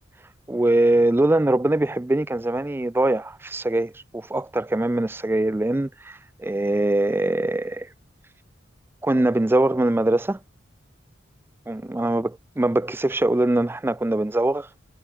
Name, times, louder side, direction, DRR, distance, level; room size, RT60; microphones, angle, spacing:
voice 1, 0.5-7.9 9.0-10.4 11.7-14.8, right 1 dB, 10° right, 0.4 m, -22 dB
head